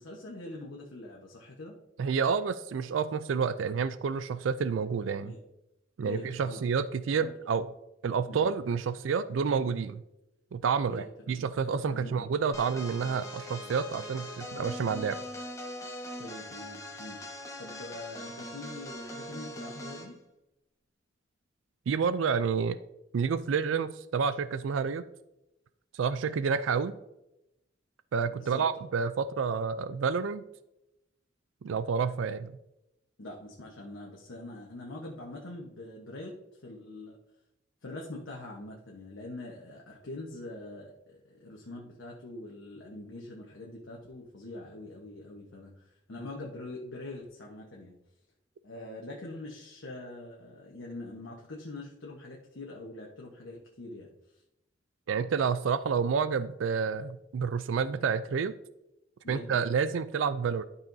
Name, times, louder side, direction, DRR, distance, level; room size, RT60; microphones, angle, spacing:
voice 1, 0.0-1.8 5.2-5.4 6.0-6.6 7.2-7.4 8.3-8.4 10.9-11.3 11.9-12.3 16.2-17.2 17.6-20.2 28.3-28.6 33.2-36.3 36.6-37.2 37.8-47.9 48.6-54.1 54.3-54.4 59.2-59.6, left 2 dB, 85° left, -2 dB, 1.1 m, -44 dB
voice 2, 2.0-5.3 6.0-7.6 8.0-10.0 10.5-15.2 21.9-22.8 23.1-25.0 25.9-27.0 28.1-30.4 31.6-32.5 55.1-58.5 59.3-60.6, right 6 dB, 80° right, 14 dB, 0.4 m, -29 dB
sound 1, 12.5-20.1, equal, 15° left, 1.3 m, -41 dB
12.0 x 5.6 x 2.7 m, 0.89 s
head